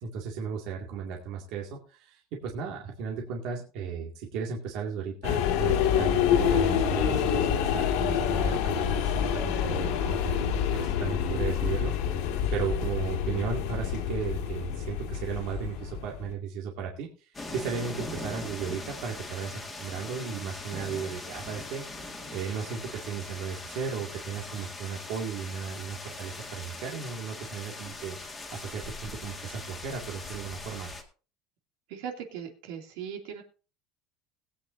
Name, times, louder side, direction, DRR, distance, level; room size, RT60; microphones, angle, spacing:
voice 1, 0.0-12.2 12.5-21.8 22.3-28.2 28.5-30.9, right 6 dB, 55° right, 0 dB, 2.2 m, -35 dB
sound 1, 5.2-16.3, left 9 dB, 65° left, 1.9 m, -27 dB
sound 2, 17.3-31.0, left 2 dB, 10° left, 1.8 m, -41 dB
voice 2, 31.9-33.4, right 8 dB, 70° right, 3 dB, 2.6 m, -39 dB
20.5 x 8.8 x 2.7 m, 0.35 s
cardioid pair, 175°, 0 cm